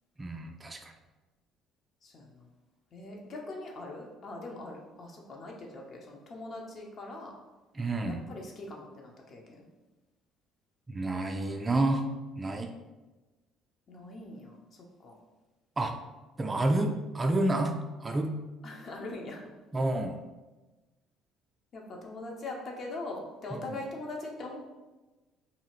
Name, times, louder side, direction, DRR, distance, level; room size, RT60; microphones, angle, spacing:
voice 1, 0.2-0.9 7.7-8.2 10.9-12.1 12.4-12.7 15.8-15.9 16.4-18.3 19.7-20.2 23.5-23.8, right 2 dB, 25° right, 5 dB, 0.3 m, -29 dB
voice 2, 2.0-2.5 2.9-7.3 8.1-9.7 13.9-15.2 18.6-19.4 21.7-24.6, left 2 dB, 50° left, 0 dB, 0.7 m, -42 dB
2.7 x 2.4 x 3.0 m, 1.2 s
hypercardioid pair, 60°, 0 cm